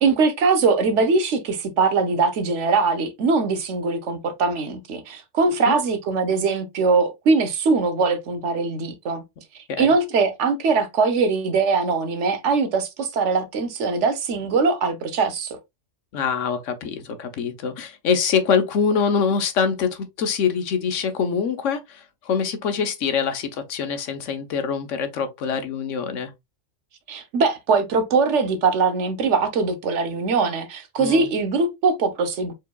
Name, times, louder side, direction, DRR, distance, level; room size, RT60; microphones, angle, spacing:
voice 1, 0.0-9.2 9.8-15.6 27.1-32.5, right 4 dB, 70° right, 1.1 m, -21 dB
voice 2, 16.1-26.3 31.0-31.3, left 6 dB, 80° left, 1.1 m, -24 dB
4.7 x 3.8 x 2.2 m
omnidirectional pair, 1.3 m